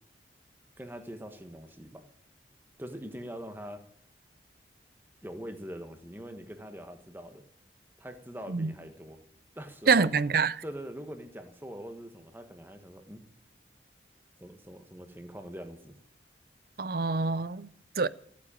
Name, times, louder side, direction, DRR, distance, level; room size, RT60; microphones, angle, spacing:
voice 1, 0.8-2.0 2.8-3.8 5.2-7.4 8.0-9.2 9.5-10.1 10.6-13.2 14.4-16.0, equal, 10° right, 1.4 m, -43 dB
voice 2, 9.9-10.5 16.8-17.7 18.0-18.1, right 4 dB, 55° right, 0.5 m, -25 dB
14.5 x 8.7 x 8.9 m
head